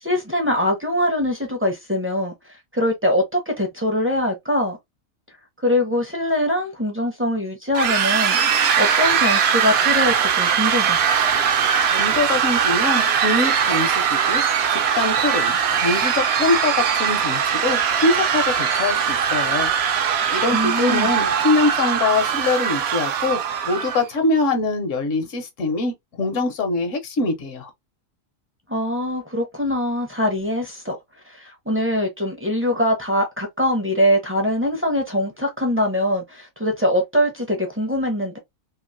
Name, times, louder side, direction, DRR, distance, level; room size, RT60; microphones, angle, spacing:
voice 1, 0.0-2.3 2.7-4.8 5.6-8.4 8.8-11.0 20.5-21.1 28.7-31.0 31.3-38.4, left 1 dB, 15° right, 0.4 m, -22 dB
sound 1, 7.7-24.0, right 7 dB, 65° right, 0.7 m, -20 dB
voice 2, 11.9-14.4 14.7-19.7 20.3-27.7, left 3 dB, 70° left, 1.1 m, -23 dB
3.0 x 2.4 x 2.5 m
omnidirectional pair, 1.4 m